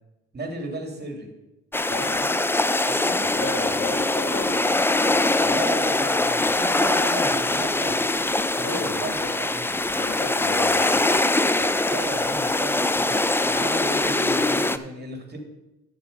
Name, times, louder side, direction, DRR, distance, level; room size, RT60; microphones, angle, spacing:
voice 1, 0.3-1.3 2.9-3.3 5.4-8.2 8.6-9.6 11.5-13.2 13.4-15.4, right 2 dB, 35° right, 3 dB, 2.5 m, -35 dB
sound 1, 1.7-14.8, left 2 dB, 10° left, 0.4 m, -23 dB
voice 2, 1.9-2.4 3.2-4.8 5.3-5.6 8.6-9.3 9.9-10.9, left 3 dB, 40° left, 1 dB, 1.6 m, -33 dB
11.0 x 6.7 x 5.2 m, 0.98 s
cardioid pair, 90°, 30 cm